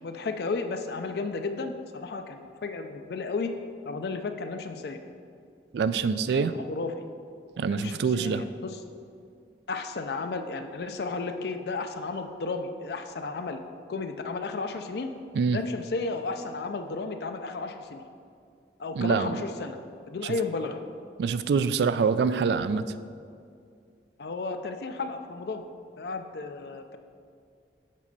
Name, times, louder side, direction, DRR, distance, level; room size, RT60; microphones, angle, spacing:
voice 1, 0.0-3.5 3.9-5.0 6.3-6.4 6.7-6.9 7.7-8.8 9.7-13.6 13.9-15.1 15.5-18.0 18.8-19.8 20.1-20.8 24.2-25.6 26.0-27.0, left 3 dB, 65° left, 7 dB, 0.4 m, -33 dB
voice 2, 5.7-6.5 7.6-8.4 15.3-15.6 19.0-19.4 20.2-20.4 21.2-22.8, right 5 dB, 75° right, 13 dB, 0.3 m, -25 dB
7.4 x 4.3 x 5.3 m, 2.3 s
head